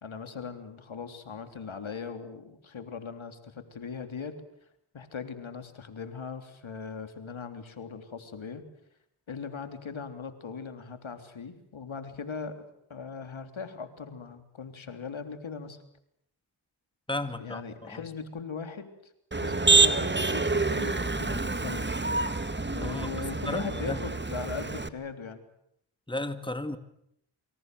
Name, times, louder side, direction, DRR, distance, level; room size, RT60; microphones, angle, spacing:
voice 1, 0.0-4.4 4.9-8.7 9.3-15.8 17.4-19.1 19.4-21.9 22.7-25.4, left 5 dB, 70° left, 8 dB, 3.6 m, -39 dB
voice 2, 17.1-18.0 22.8-23.1 23.5-24.0 26.1-26.8, left 1 dB, 10° left, 10 dB, 2.3 m, -34 dB
Motor vehicle (road), 19.3-24.9, right 3 dB, 20° right, 1.9 m, -27 dB
28.0 x 25.5 x 7.9 m, 0.74 s
cardioid pair, 55°, 49 cm